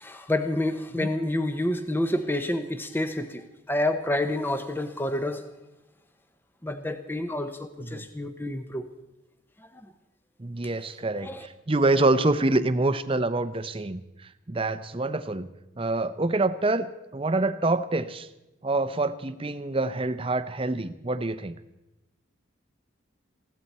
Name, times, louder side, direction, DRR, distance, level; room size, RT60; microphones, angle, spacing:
voice 1, 0.0-5.4 6.6-8.9 9.6-9.9 11.2-11.5, left 1 dB, 10° left, 9 dB, 0.7 m, -29 dB
voice 2, 10.4-14.0 14.5-15.5 15.8-18.3 18.6-21.5, right 2 dB, 25° right, 12 dB, 0.6 m, -26 dB
20.5 x 16.0 x 4.2 m, 0.96 s
head